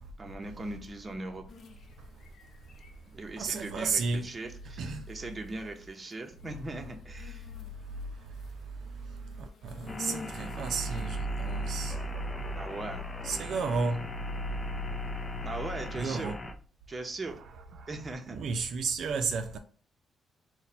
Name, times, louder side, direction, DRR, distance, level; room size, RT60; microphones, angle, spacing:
voice 1, 0.2-1.4 3.1-7.5 12.6-13.0 15.4-16.3 16.9-17.4 17.9-18.4, right 2 dB, 25° right, 0.7 m, -39 dB
sound 1, 1.5-11.1, left 4 dB, 65° left, 0.6 m, -51 dB
voice 2, 2.0-2.9 3.4-4.3 4.8-5.1 7.6-12.6 13.2-15.5 15.9-16.4 17.3-18.0 18.3-19.6, right 3 dB, 70° right, 0.4 m, -34 dB
sound 2, 9.9-16.5, left 2 dB, 20° left, 0.5 m, -42 dB
4.1 x 2.2 x 4.1 m
cardioid pair, 100°, 0 cm